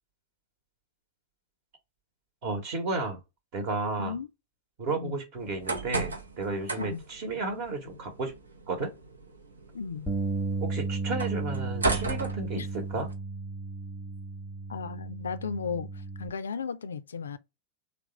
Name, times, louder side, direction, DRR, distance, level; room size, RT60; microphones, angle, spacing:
voice 1, 2.4-3.2 3.5-4.1 4.8-8.3 8.7-8.9 10.6-13.1, right 3 dB, 45° right, 1.0 m, -33 dB
sound 1, 5.4-13.1, right 3 dB, 75° right, 0.7 m, -36 dB
voice 2, 9.7-10.1 12.6-12.7 14.7-17.4, left 5 dB, 70° left, 0.3 m, -35 dB
Bass guitar, 10.1-16.3, right 3 dB, ahead, 0.8 m, -34 dB
3.4 x 2.2 x 4.1 m
figure-of-eight pair, 90°, 0 cm